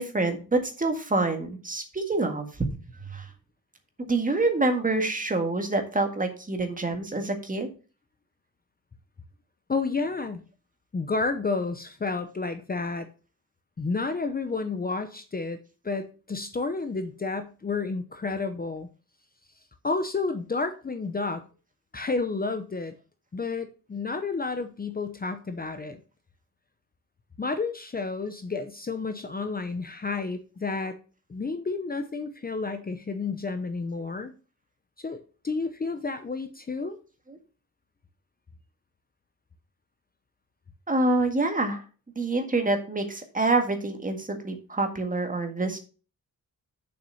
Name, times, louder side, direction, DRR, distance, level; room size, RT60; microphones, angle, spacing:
voice 1, 0.0-2.5 3.0-3.3 4.0-7.7 37.3-37.4 40.9-41.8 42.1-45.8, right 2 dB, 25° right, 5 dB, 1.8 m, -26 dB
voice 2, 9.7-10.4 10.9-13.1 13.8-15.6 15.8-18.9 19.8-21.5 21.9-22.9 23.3-26.0 27.4-31.0 31.3-34.3 35.0-37.0, left 4 dB, 25° left, 8 dB, 0.7 m, -31 dB
7.2 x 6.1 x 5.5 m, 0.35 s
wide cardioid pair, 160°, 33 cm